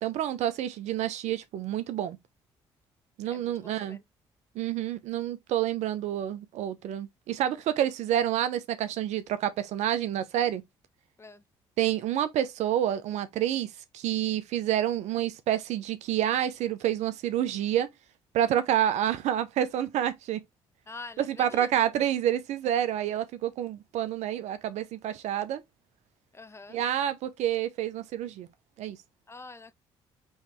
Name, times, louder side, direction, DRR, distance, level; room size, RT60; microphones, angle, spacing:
voice 1, 0.0-2.2 3.2-4.0 4.5-10.6 11.8-17.9 18.3-20.4 21.2-25.6 26.7-28.5 28.8-29.0, right 11 dB, 75° right, 0.7 m, -28 dB
voice 2, 3.3-4.0 11.2-11.4 20.9-21.9 26.3-26.8 29.3-29.7, left 3 dB, 20° left, 0.7 m, -46 dB
4.8 x 3.2 x 3.1 m
supercardioid pair, 60°, 12 cm